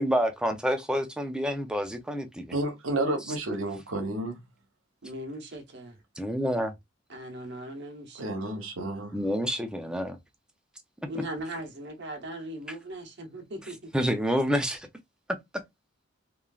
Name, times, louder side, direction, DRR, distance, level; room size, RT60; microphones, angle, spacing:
voice 1, 0.0-2.5 6.2-6.7 9.1-10.2 13.9-14.9, equal, 5° right, 0.4 m, -28 dB
voice 2, 2.5-4.4 8.2-9.2, right 2 dB, 85° right, 0.9 m, -31 dB
voice 3, 5.0-6.0 7.1-8.2 11.0-14.0, right 1 dB, 60° right, 0.9 m, -39 dB
3.1 x 2.4 x 2.3 m
head